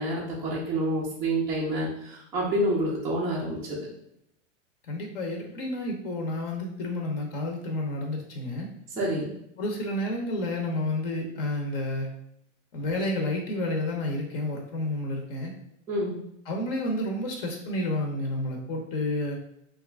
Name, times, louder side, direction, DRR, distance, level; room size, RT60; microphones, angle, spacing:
voice 1, 0.0-3.8 9.0-9.3 15.9-16.1, right 1 dB, 10° right, -6 dB, 0.3 m, -28 dB
voice 2, 4.9-8.7 9.6-12.1 12.7-15.5 16.5-19.4, left 1 dB, 50° left, 1 dB, 0.7 m, -30 dB
2.8 x 2.4 x 3.3 m, 0.78 s
hypercardioid pair, 130°, 38 cm